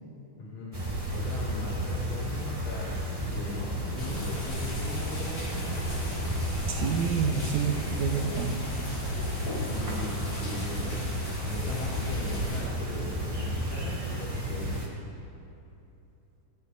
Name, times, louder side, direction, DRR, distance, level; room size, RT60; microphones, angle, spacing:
voice 1, 0.4-2.9 3.3-5.8 7.3-7.5 9.7-14.8, left 2 dB, 65° left, -9 dB, 4.0 m, -39 dB
sound 1, 0.7-14.9, equal, 10° right, 1.2 m, -32 dB
sound 2, 4.0-12.6, left 1 dB, 40° left, 4.0 m, -40 dB
voice 2, 6.7-8.9, right 6 dB, 65° right, 2 dB, 1.8 m, -29 dB
19.5 x 18.0 x 2.7 m, 2.8 s
omnidirectional pair, 4.2 m